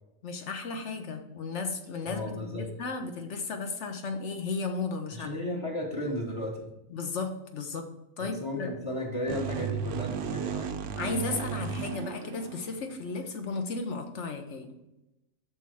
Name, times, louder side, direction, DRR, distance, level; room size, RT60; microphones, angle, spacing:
voice 1, 0.2-5.6 6.9-7.9 8.2-8.8 11.0-14.8, left 4 dB, 60° left, 5 dB, 1.2 m, -35 dB
voice 2, 2.1-2.7 5.1-6.7 8.2-10.8, left 1 dB, 25° left, -2 dB, 1.0 m, -34 dB
sound 1, 9.3-13.0, right 7 dB, 70° right, 0.9 m, -34 dB
6.2 x 4.1 x 6.2 m, 0.92 s
omnidirectional pair, 1.4 m